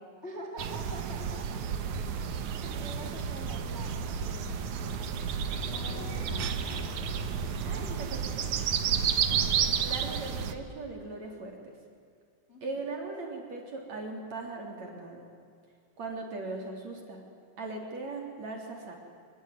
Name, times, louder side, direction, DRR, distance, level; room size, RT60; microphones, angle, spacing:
voice 1, 0.2-1.6 2.1-5.1 5.6-7.5 9.2-9.6 12.5-12.8, equal, 20° left, 1 dB, 2.3 m, -46 dB
sound 1, 0.6-10.5, right 7 dB, 65° right, 2.0 m, -31 dB
sound 2, 5.0-8.8, left 2 dB, 70° left, 4.6 m, -45 dB
voice 2, 7.6-8.6 9.6-11.8 12.6-15.3 16.0-17.2 17.6-18.9, right 3 dB, 40° right, 2 dB, 4.3 m, -39 dB
26.5 x 22.5 x 9.7 m, 2.3 s
omnidirectional pair, 5.4 m